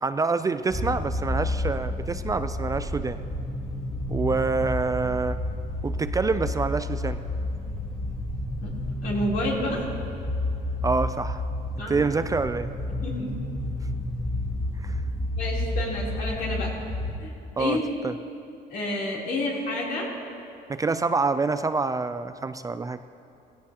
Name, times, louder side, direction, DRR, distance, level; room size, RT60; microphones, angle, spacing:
voice 1, 0.0-3.2 4.1-5.4 5.8-7.2 10.8-11.4 11.9-12.7 14.8-15.0 17.6-17.8 18.0-18.1 20.7-23.0, right 4 dB, 20° right, 10 dB, 0.4 m, -26 dB
sound 1, 0.7-17.2, left 1 dB, 30° left, 2.3 m, -30 dB
voice 2, 9.0-9.8 11.8-12.0 13.0-13.5 15.3-16.8 17.2-17.3 17.6-17.8 18.7-20.1, left 1 dB, 70° left, -4 dB, 3.4 m, -29 dB
16.5 x 16.0 x 2.9 m, 2.7 s
cardioid pair, 110°, 17 cm